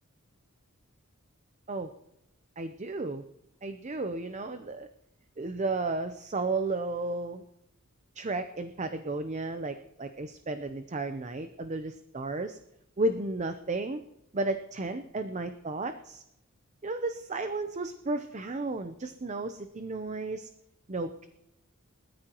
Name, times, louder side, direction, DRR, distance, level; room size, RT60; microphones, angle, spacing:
voice 1, 2.6-3.2 3.6-4.9 5.4-7.4 8.2-12.6 13.0-14.0 14.3-16.2 16.8-20.5 20.9-21.3, right 2 dB, 35° right, 8 dB, 0.7 m, -33 dB
20.5 x 14.0 x 3.0 m, 0.82 s
head